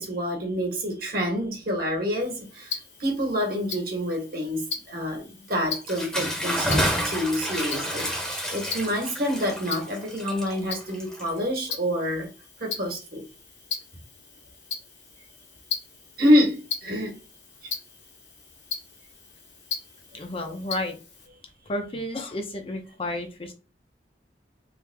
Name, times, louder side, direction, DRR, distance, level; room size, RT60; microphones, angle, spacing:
voice 1, 0.0-2.7 3.0-12.3 12.6-13.2 16.2-17.2 17.6-17.7, equal, 55° right, 1.3 m, -27 dB
Tick-tock, 2.2-21.3, left 6 dB, 75° left, 1.5 m, -39 dB
Bathtub (filling or washing) / Splash splatter, 5.8-11.7, equal, 5° left, 0.9 m, -29 dB
voice 2, 20.1-21.0 21.7-23.5, left 1 dB, 30° left, 0.7 m, -31 dB
3.3 x 2.4 x 3.3 m
head